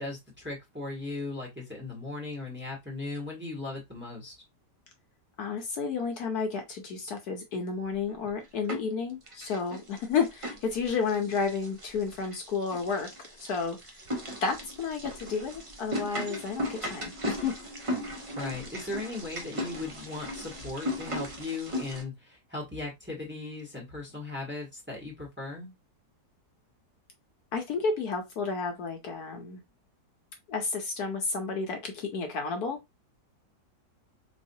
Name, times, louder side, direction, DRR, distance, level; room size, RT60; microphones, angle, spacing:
voice 1, 0.0-4.3 18.3-25.7, left 3 dB, 5° right, 1.2 m, -37 dB
voice 2, 5.4-13.1 13.4-13.8 14.4-17.6 27.5-29.6 30.5-32.8, left 5 dB, 65° left, 1.2 m, -31 dB
sound 1, 8.1-9.0 9.3-22.0, left 1 dB, 35° right, 0.5 m, -37 dB
3.9 x 3.1 x 2.7 m
omnidirectional pair, 1.9 m